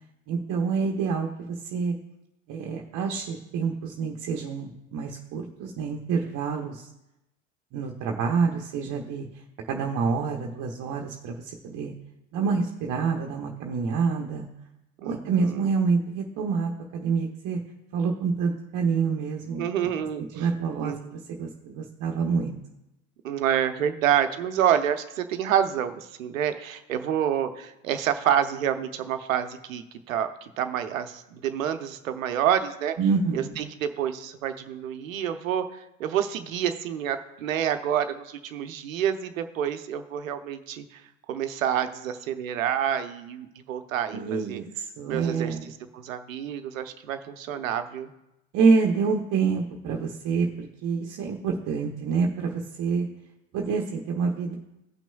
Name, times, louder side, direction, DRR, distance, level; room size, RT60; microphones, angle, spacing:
voice 1, 0.3-1.9 2.5-6.9 7.7-9.3 9.7-11.9 12.3-14.5 15.0-17.6 17.9-19.6 20.2-22.6 33.0-33.6 44.1-45.7 48.5-53.1 53.5-54.6, right 5 dB, 50° right, 2 dB, 0.9 m, -27 dB
voice 2, 15.0-15.7 19.6-20.5 20.8-21.1 23.2-33.0 33.3-41.0 41.3-44.6 45.1-45.6 45.9-48.1, right 9 dB, 80° right, 9 dB, 0.8 m, -28 dB
17.0 x 6.0 x 2.3 m, 0.89 s
hypercardioid pair, 65°, 40 cm